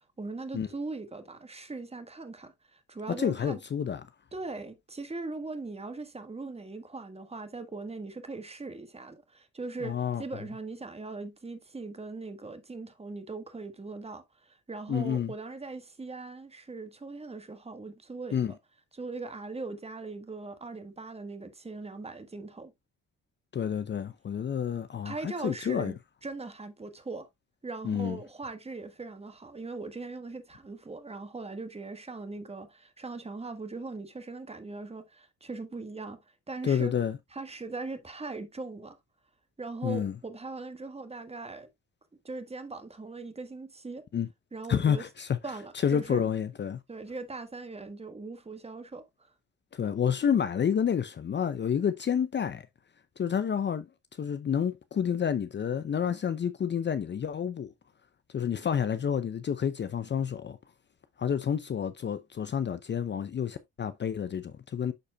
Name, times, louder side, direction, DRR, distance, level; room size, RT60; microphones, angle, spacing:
voice 1, 0.2-3.6 4.3-18.4 18.9-22.7 25.0-25.9 26.2-27.3 27.6-36.2 36.5-36.9 37.3-39.0 39.6-41.7 42.2-44.0 44.5-45.0 45.4-46.3 46.9-49.3, right 3 dB, 20° right, 1.5 m, -40 dB
voice 2, 3.2-4.1 9.8-10.2 14.9-15.3 18.3-18.5 23.5-25.9 27.8-28.2 36.6-37.2 39.8-40.1 44.1-44.3 44.7-45.4 45.7-46.8 49.7-52.7 53.2-53.9 54.2-57.7 58.3-60.6 61.2-64.9, left 8 dB, 35° left, 0.6 m, -29 dB
12.0 x 4.2 x 2.3 m
cardioid pair, 90°, 30 cm